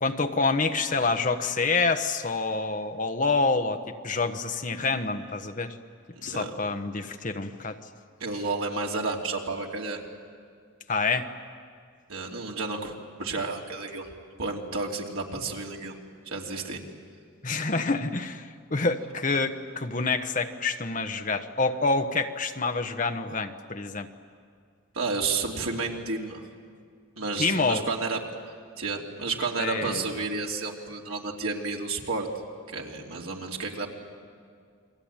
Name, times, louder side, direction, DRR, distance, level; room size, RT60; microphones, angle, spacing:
voice 1, 0.0-3.8 4.0-5.8 6.2-7.8 10.9-11.3 17.4-24.1 27.4-27.8 29.6-30.1, left 3 dB, 35° left, 7 dB, 1.1 m, -27 dB
voice 2, 6.1-6.5 8.2-10.0 12.1-12.9 13.2-14.1 14.4-15.9 16.3-16.8 24.9-26.4 27.2-28.2 28.8-32.3 32.7-33.9, right 3 dB, 85° right, 0 dB, 3.1 m, -31 dB
29.5 x 22.5 x 8.9 m, 2.2 s
head